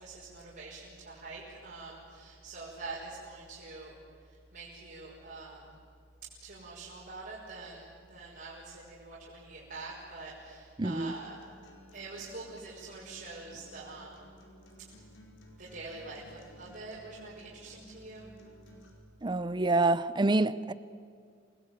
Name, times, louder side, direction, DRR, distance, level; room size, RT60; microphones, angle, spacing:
voice 1, 0.0-4.0 4.5-5.7 6.4-11.4 11.9-14.3 15.5-18.3, right 3 dB, 50° right, 5.8 m, -45 dB
voice 2, 10.8-11.1 19.2-20.7, right 2 dB, 25° right, 0.6 m, -27 dB
Acoustic guitar, 10.9-18.9, left 1 dB, 75° left, 4.9 m, -56 dB
28.0 x 20.0 x 9.4 m
head